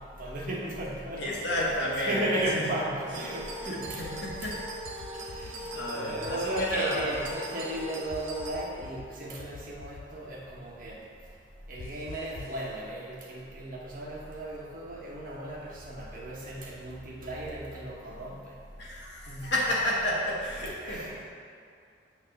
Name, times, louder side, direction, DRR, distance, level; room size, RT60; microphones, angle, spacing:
voice 1, 0.0-4.1 4.4-4.5 5.3-11.0 11.7-18.5 19.3-19.5 20.8-21.2, right 1 dB, 45° right, -4 dB, 1.2 m, -35 dB
voice 2, 1.2-2.7 3.1-3.3 3.6-4.6 5.1-7.4 10.6-10.7 11.1-11.3 18.8-21.2, left 1 dB, 60° left, -5 dB, 1.7 m, -32 dB
sound 1, 3.1-8.6, right 1 dB, 90° right, 1.1 m, -40 dB
sound 2, 3.9-4.5 4.9-5.5 6.3-7.2 8.1-9.1 9.4-10.0 11.8-12.6, left 4 dB, 85° left, 0.6 m, -45 dB
8.6 x 3.5 x 6.6 m, 2.4 s
head